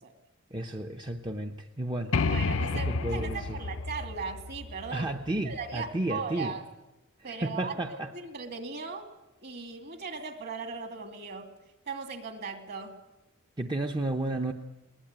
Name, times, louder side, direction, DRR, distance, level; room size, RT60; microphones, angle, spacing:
voice 1, 0.5-2.2 2.7-3.6 4.9-6.6 7.2-8.1 13.6-14.5, right 1 dB, 20° right, 3 dB, 0.9 m, -32 dB
sound 1, 2.1-5.8, left 3 dB, 65° left, 0.7 m, -31 dB
voice 2, 2.3-5.1 5.4-6.6 7.2-9.1 9.4-11.5 11.9-13.0, right 5 dB, 50° right, 6 dB, 2.5 m, -38 dB
21.5 x 19.0 x 8.9 m, 1.0 s
head